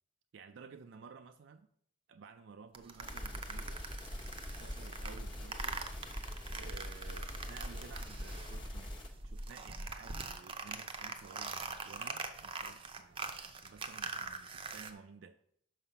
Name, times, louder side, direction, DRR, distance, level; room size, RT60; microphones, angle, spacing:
voice 1, 0.3-1.7 2.1-3.9 4.6-5.8 6.6-9.0 9.2-15.4, right 5 dB, 80° right, 0.4 m, -54 dB
sound 1, 2.7-8.8 9.0-14.9, right 4 dB, 30° right, 0.6 m, -43 dB
sound 2, 3.0-9.1, equal, 25° left, 1.2 m, -43 dB
5.8 x 5.6 x 5.6 m
head